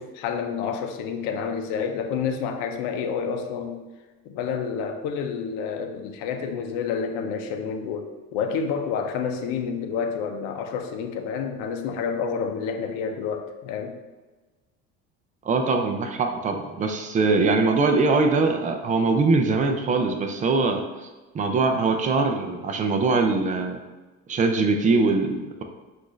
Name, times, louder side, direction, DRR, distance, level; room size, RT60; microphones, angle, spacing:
voice 1, 0.0-3.8 4.3-14.0, left 6 dB, 75° left, 5 dB, 0.6 m, -29 dB
voice 2, 15.4-21.1 21.3-23.8 24.3-25.6, right 3 dB, 25° right, 5 dB, 0.4 m, -22 dB
6.0 x 2.5 x 3.1 m, 1.2 s
cardioid pair, 140°, 31 cm